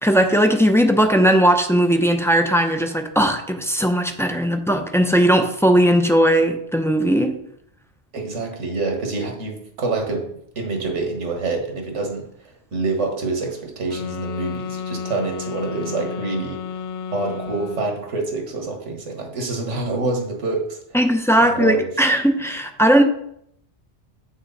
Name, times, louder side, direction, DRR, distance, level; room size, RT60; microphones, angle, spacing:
voice 1, 0.0-7.4 20.9-23.0, equal, 5° left, 5 dB, 0.6 m, -18 dB
voice 2, 8.1-16.6 17.1-20.8 21.4-21.9, right 3 dB, 90° right, 2 dB, 1.8 m, -26 dB
sound 1, 13.9-18.1, left 6 dB, 70° left, 0.9 m, -31 dB
7.5 x 6.3 x 4.0 m, 0.71 s
omnidirectional pair, 1.2 m